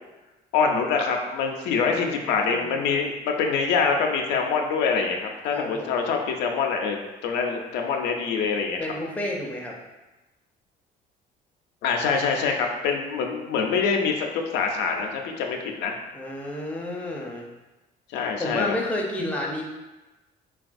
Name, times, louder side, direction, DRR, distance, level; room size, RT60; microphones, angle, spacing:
voice 1, 0.5-8.8 11.8-16.0 18.1-18.8, left 5 dB, 85° left, 2 dB, 0.4 m, -25 dB
voice 2, 1.7-3.0 5.5-6.0 8.8-9.8 16.1-17.4 18.1-19.6, left 1 dB, 10° left, -1 dB, 0.5 m, -31 dB
3.3 x 2.3 x 2.5 m, 1.1 s
cardioid pair, 110°, 17 cm